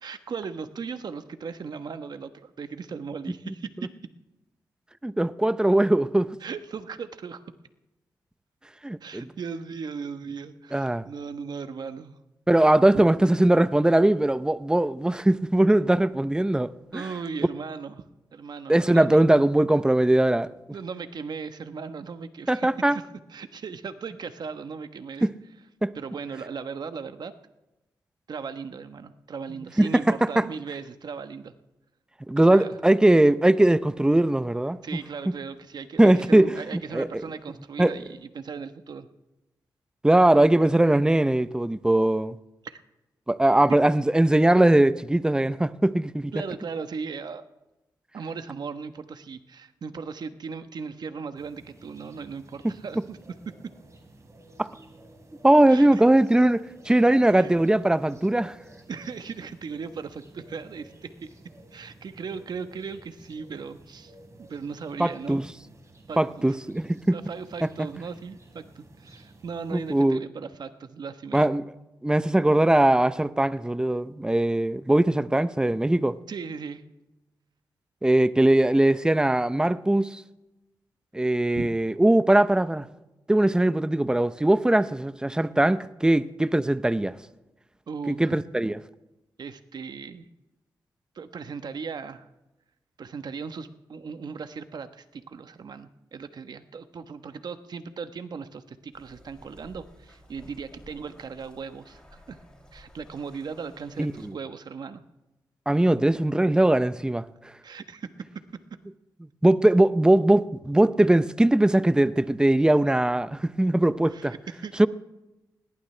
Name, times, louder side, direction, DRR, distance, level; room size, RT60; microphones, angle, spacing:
voice 1, 0.0-3.7 6.4-7.4 9.0-12.2 12.9-13.1 16.9-18.0 18.3-19.4 20.7-23.0 23.3-25.3 25.9-27.3 28.3-31.5 32.4-32.8 34.8-39.1 42.6-42.8 46.3-47.4 48.1-53.2 53.5-53.6 55.7-55.9 57.3-57.5 58.9-61.3 61.7-64.1 64.4-65.4 66.1-66.6 67.1-71.5 76.3-76.8 81.5-81.7 87.9-88.4 89.4-90.3 91.1-92.3 93.0-102.4 102.7-105.0 107.6-108.1 114.1-114.9, right 5 dB, 65° right, 1.1 m, -37 dB
voice 2, 5.0-6.4 8.8-9.3 10.7-11.0 12.5-17.1 18.7-20.5 22.5-23.0 25.2-25.3 25.8-25.9 29.8-30.5 32.3-34.8 36.0-36.5 36.9-37.2 37.8-37.9 40.0-42.4 43.3-46.3 54.6-54.7 55.4-58.6 65.0-65.5 66.2-67.2 67.6-67.7 69.7-70.2 71.3-71.6 72.0-76.2 78.0-80.2 81.1-82.9 83.3-87.1 88.1-88.8 104.0-104.3 105.7-107.2 109.4-114.3 114.8-114.9, right 1 dB, 10° right, 0.6 m, -20 dB
sound 1, 51.4-70.0, right 2 dB, 40° right, 3.8 m, -53 dB
sound 2, 98.9-104.3, equal, 10° left, 6.6 m, -53 dB
20.5 x 18.0 x 3.3 m
cardioid pair, 65°, 8 cm